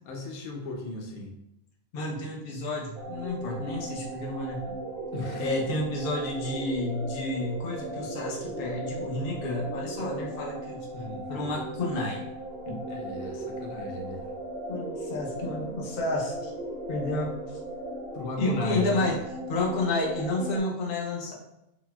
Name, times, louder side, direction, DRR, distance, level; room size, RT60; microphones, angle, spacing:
voice 1, 0.1-1.3 5.1-5.6 10.9-11.2 12.9-14.2 18.1-19.0, left 3 dB, 90° left, 2 dB, 1.1 m, -35 dB
voice 2, 1.9-4.8 5.4-10.9 11.3-12.2 12.7-12.8 14.7-16.5 16.9-17.6 18.4-19.2 19.5-21.3, left 2 dB, 55° left, -2 dB, 0.7 m, -30 dB
sound 1, 2.9-20.6, right 1 dB, 65° right, 0.6 m, -37 dB
3.9 x 2.0 x 2.2 m, 0.86 s
omnidirectional pair, 1.5 m